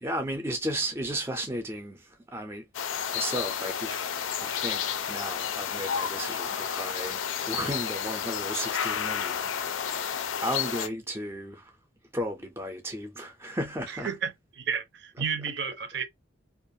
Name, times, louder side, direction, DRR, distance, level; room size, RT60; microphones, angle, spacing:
voice 1, 0.0-2.6 3.1-4.8 5.1-11.7 12.1-14.2 15.1-15.5 16.0-16.1, right 1 dB, 15° right, 0.4 m, -35 dB
sound 1, 2.7-10.9, left 8 dB, 90° left, 0.4 m, -31 dB
voice 2, 14.0-16.0, right 6 dB, 60° right, 0.6 m, -32 dB
2.4 x 2.3 x 2.7 m
head